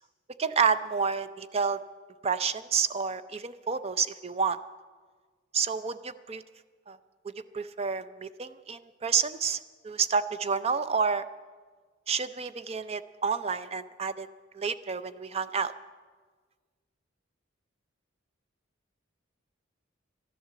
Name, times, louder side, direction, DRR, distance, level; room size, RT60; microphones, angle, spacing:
voice 1, 0.4-1.8 2.2-4.6 5.5-6.4 6.9-7.0 7.5-9.6 9.8-11.2 12.1-14.3 14.5-15.7, right 6 dB, 30° right, 13 dB, 0.4 m, -29 dB
12.5 x 11.0 x 7.5 m, 1.5 s
head